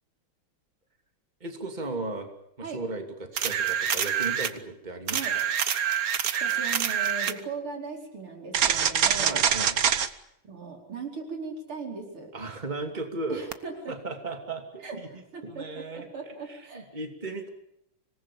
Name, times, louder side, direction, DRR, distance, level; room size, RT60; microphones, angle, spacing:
voice 1, 1.4-2.3 2.6-5.4 9.2-9.7 12.3-13.4 13.9-15.1 15.4-16.1 16.5-17.5, right 2 dB, 20° right, 5 dB, 2.9 m, -36 dB
sound 1, 3.4-4.6 5.1-7.4 8.5-10.1 13.5-13.6, right 8 dB, 50° right, 1.3 m, -25 dB
voice 2, 6.4-9.4 10.4-12.3 13.3-13.9 14.8-16.9, right 4 dB, 90° right, 2 dB, 5.5 m, -38 dB
26.0 x 19.5 x 8.7 m, 0.79 s
omnidirectional pair, 2.3 m